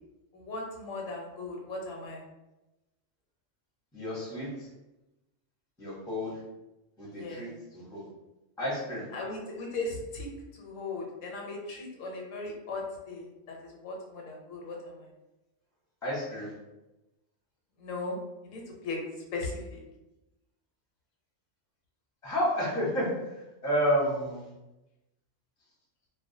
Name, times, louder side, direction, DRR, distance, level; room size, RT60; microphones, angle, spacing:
voice 1, 0.3-2.2 7.1-7.5 9.1-10.3 10.5-15.1 17.8-19.0 19.3-19.8, left 2 dB, 75° left, 0 dB, 1.0 m, -38 dB
voice 2, 3.9-4.7 5.8-6.3 7.0-8.1 8.6-9.0 16.0-16.5 22.2-23.3 23.6-24.5, equal, 5° left, -7 dB, 0.5 m, -30 dB
2.3 x 2.2 x 2.6 m, 0.98 s
omnidirectional pair, 1.3 m